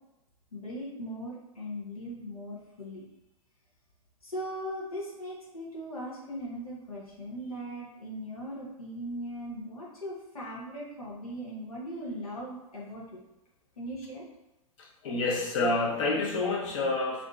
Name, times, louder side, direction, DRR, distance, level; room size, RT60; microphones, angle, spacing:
voice 1, 0.5-3.0 4.2-13.2 13.8-14.2, equal, 90° left, -6 dB, 0.9 m, -39 dB
voice 2, 14.8-17.3, left 3 dB, 60° left, -2 dB, 1.0 m, -28 dB
3.6 x 2.6 x 2.3 m, 0.97 s
hypercardioid pair, 100°, 18 cm